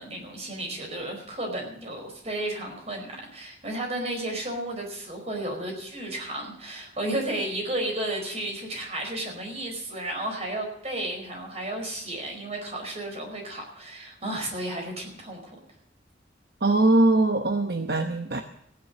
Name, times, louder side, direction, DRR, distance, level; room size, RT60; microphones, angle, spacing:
voice 1, 0.0-15.5, right 1 dB, 35° right, 2 dB, 4.8 m, -33 dB
voice 2, 16.6-18.4, right 2 dB, 60° right, 6 dB, 0.9 m, -21 dB
15.5 x 9.9 x 6.8 m, 0.71 s
head